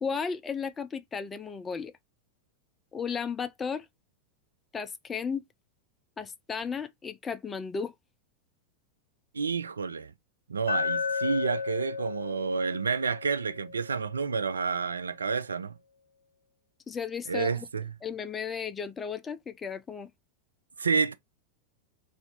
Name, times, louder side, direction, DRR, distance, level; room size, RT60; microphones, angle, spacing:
voice 1, 0.0-1.9 2.9-3.9 4.7-5.4 6.2-7.9 16.9-17.7 18.0-20.1, left 6 dB, 20° left, 0.5 m, -34 dB
voice 2, 9.3-10.1 10.5-15.7 17.3-17.9 20.8-21.1, right 5 dB, 75° right, 0.4 m, -29 dB
Glass, 10.7-14.8, left 5 dB, 70° left, 0.6 m, -34 dB
3.4 x 2.5 x 3.7 m
figure-of-eight pair, 90°, 0 cm